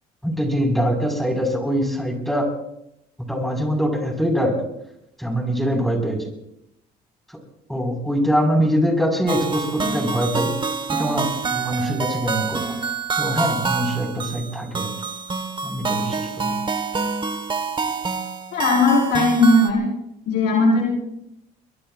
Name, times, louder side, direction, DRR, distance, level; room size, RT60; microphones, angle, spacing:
voice 1, 0.2-2.5 3.3-4.6 5.2-6.2 7.7-10.5 10.9-12.7 13.2-14.9 15.6-16.5, equal, ahead, 2 dB, 4.9 m, -23 dB
sound 1, 9.3-19.7, right 4 dB, 30° right, 1.3 m, -26 dB
voice 2, 18.5-19.8 20.3-20.9, left 2 dB, 80° left, -3 dB, 4.9 m, -17 dB
23.0 x 22.0 x 2.5 m, 0.81 s
cardioid pair, 110°, 17 cm